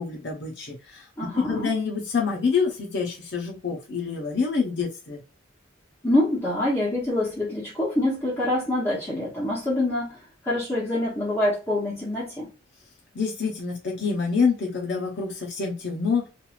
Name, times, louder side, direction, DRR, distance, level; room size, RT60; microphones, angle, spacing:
voice 1, 0.0-5.2 13.1-16.3, left 5 dB, 60° left, 0.8 m, -27 dB
voice 2, 1.2-1.7 6.0-12.5, left 1 dB, 10° left, 0.8 m, -25 dB
3.1 x 2.5 x 2.4 m
head